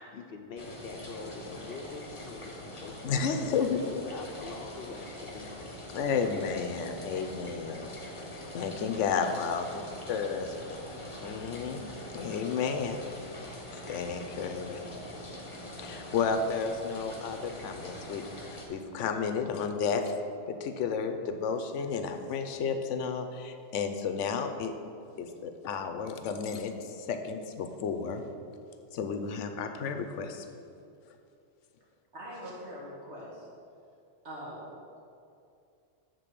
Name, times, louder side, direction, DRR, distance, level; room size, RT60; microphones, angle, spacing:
voice 1, 0.1-3.3 3.8-5.6, left 4 dB, 60° left, 4 dB, 0.8 m, -44 dB
sound 1, 0.6-18.7, left 1 dB, 30° left, 0.9 m, -43 dB
voice 2, 3.0-3.8 5.9-7.9 8.5-9.6 10.1-10.5 11.2-11.9 12.1-13.0 13.9-14.8 15.8-20.1 20.5-24.7 25.2-28.2 28.9-30.5, left 5 dB, 85° left, 6 dB, 1.0 m, -32 dB
voice 3, 32.1-33.5 34.2-34.7, equal, 70° right, -5 dB, 2.1 m, -42 dB
7.6 x 3.9 x 6.7 m, 2.5 s
omnidirectional pair, 1.2 m